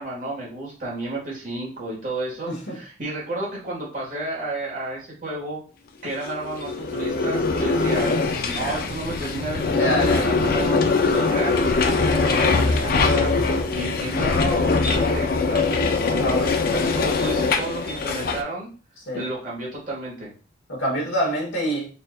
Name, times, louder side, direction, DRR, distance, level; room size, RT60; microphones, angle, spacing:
voice 1, 0.0-5.6 6.0-8.2 8.4-11.7 12.1-13.3 13.7-16.2 16.7-18.7 19.1-20.3, right 2 dB, 45° right, -5 dB, 1.5 m, -32 dB
voice 2, 2.5-2.8 8.5-8.8 9.7-10.2 16.2-16.8 19.1-19.3 20.7-21.9, right 1 dB, 85° left, -1 dB, 1.2 m, -26 dB
sound 1, 6.3-18.4, left 4 dB, 50° left, 0.4 m, -22 dB
4.1 x 2.5 x 2.3 m, 0.38 s
head